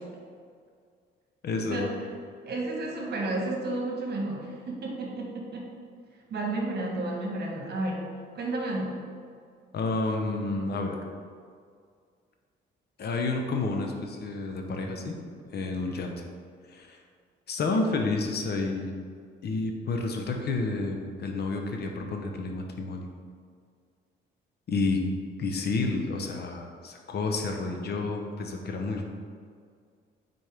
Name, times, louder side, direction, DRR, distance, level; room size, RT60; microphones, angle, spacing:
voice 1, 1.4-1.9 9.7-11.0 13.0-15.2 15.5-16.2 16.7-17.0 17.5-18.9 19.4-23.0 24.7-25.0 25.4-29.0, left 3 dB, 55° left, 3 dB, 0.8 m, -30 dB
voice 2, 2.4-5.7 6.3-9.0, right 2 dB, 55° right, 0 dB, 1.3 m, -32 dB
6.4 x 4.4 x 3.4 m, 2.1 s
cardioid pair, 90°, 20 cm